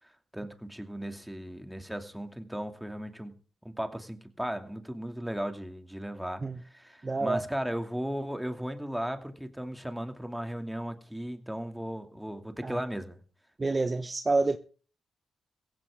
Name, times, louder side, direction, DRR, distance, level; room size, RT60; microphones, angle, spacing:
voice 1, 0.0-3.3 3.6-13.2, equal, 5° right, 2.5 m, -36 dB
voice 2, 7.0-7.4 12.6-12.8 13.6-14.6, right 3 dB, 30° right, 1.0 m, -28 dB
16.0 x 15.5 x 3.7 m
cardioid pair, 65°, 0 cm